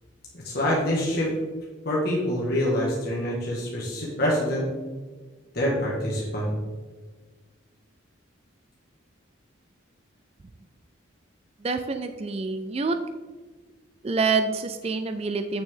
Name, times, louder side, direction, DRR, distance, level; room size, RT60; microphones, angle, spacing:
voice 1, 0.3-1.3 1.8-4.7 5.5-6.5, left 1 dB, 50° left, -5 dB, 1.8 m, -26 dB
voice 2, 11.6-13.0 14.0-15.6, right 4 dB, 30° right, 8 dB, 0.4 m, -26 dB
9.0 x 6.3 x 3.8 m, 1.3 s
head